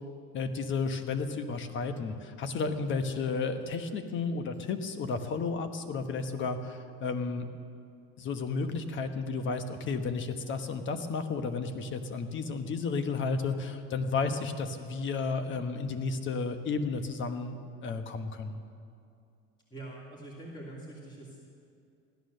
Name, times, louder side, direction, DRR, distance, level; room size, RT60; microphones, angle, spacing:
voice 1, 0.3-7.5 8.2-17.6 17.8-18.6, left 4 dB, 40° left, 8 dB, 1.2 m, -32 dB
voice 2, 19.7-21.4, right 2 dB, 15° left, -3 dB, 2.4 m, -44 dB
15.5 x 11.5 x 6.6 m, 2.4 s
cardioid pair, 130°, 29 cm